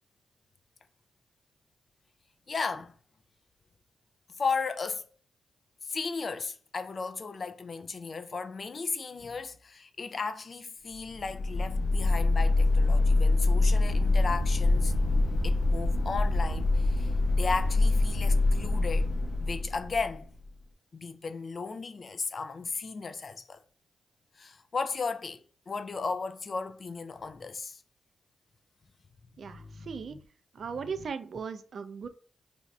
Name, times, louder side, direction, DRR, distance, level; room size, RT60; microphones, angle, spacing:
voice 1, 2.5-2.9 4.4-5.1 5.9-14.9 15.4-19.1 19.4-20.3 20.9-23.6 24.4-27.8 29.5-30.2 31.0-31.1, left 4 dB, 50° left, 0.4 m, -35 dB
sound 1, 11.1-20.4, left 2 dB, 80° left, 0.7 m, -25 dB
voice 2, 29.4-30.2 30.5-32.1, right 6 dB, 65° right, 0.3 m, -38 dB
2.6 x 2.3 x 4.1 m
cardioid pair, 55°, 0 cm